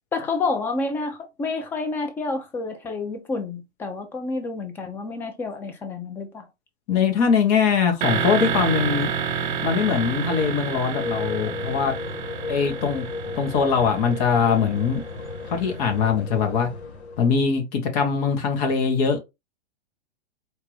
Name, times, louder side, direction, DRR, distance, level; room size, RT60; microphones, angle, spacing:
voice 1, 0.1-6.5, left 3 dB, 5° left, 0.4 m, -29 dB
voice 2, 6.9-9.1 9.6-11.9 12.5-13.0 13.3-15.0 15.5-16.7 17.2-19.2, left 6 dB, 35° left, 1.1 m, -22 dB
sound 1, 8.0-15.8, right 7 dB, 50° right, 1.1 m, -29 dB
sound 2, 8.4-17.4, left 3 dB, 70° left, 2.0 m, -35 dB
4.5 x 2.5 x 3.2 m
hypercardioid pair, 130°, 34 cm